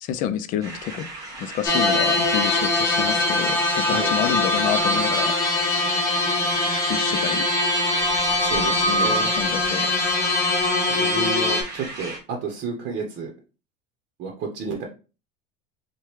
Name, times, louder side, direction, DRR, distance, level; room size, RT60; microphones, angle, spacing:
voice 1, 0.0-1.0 1.4-5.3 6.8-7.5 8.4-9.9, left 10 dB, 50° left, 0.4 m, -29 dB
sound 1, 0.6-12.2, right 2 dB, 20° right, 1.3 m, -37 dB
sound 2, 1.6-11.6, left 2 dB, 15° left, 1.3 m, -22 dB
voice 2, 3.8-4.2 8.4-9.3 10.9-13.3 14.2-14.8, right 4 dB, 45° right, 0.9 m, -31 dB
4.7 x 2.2 x 3.1 m
cardioid pair, 140°, 18 cm